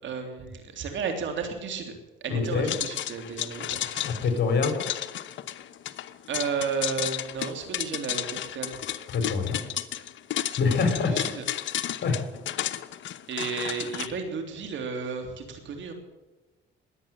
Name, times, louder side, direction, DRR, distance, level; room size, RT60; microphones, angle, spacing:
voice 1, 0.0-1.9 2.2-4.0 6.3-8.8 11.1-11.4 13.3-15.9, right 5 dB, 70° right, 5 dB, 3.4 m, -33 dB
voice 2, 2.3-2.7 4.0-4.7 9.1-9.6 10.6-11.1 12.0-12.2, left 5 dB, 60° left, 5 dB, 4.6 m, -25 dB
sound 1, 2.7-14.1, left 12 dB, 75° left, 0.9 m, -33 dB
21.5 x 8.8 x 7.7 m, 1.2 s
cardioid pair, 90°, 20 cm